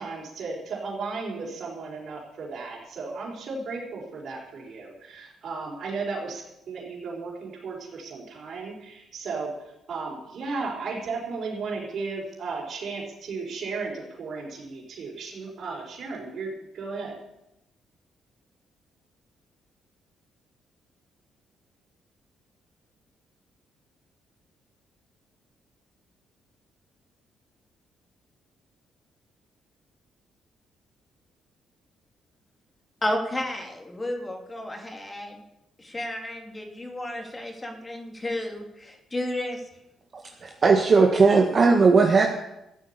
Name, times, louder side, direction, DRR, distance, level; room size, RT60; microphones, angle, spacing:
voice 1, 0.0-17.2, right 4 dB, 60° right, -4 dB, 4.6 m, -35 dB
voice 2, 33.0-35.4 35.8-39.6, left 1 dB, 20° left, 3 dB, 2.8 m, -32 dB
voice 3, 40.4-42.3, right 4 dB, 40° right, 2 dB, 1.6 m, -18 dB
13.5 x 8.5 x 8.5 m, 0.87 s
cardioid pair, 90°, 0 cm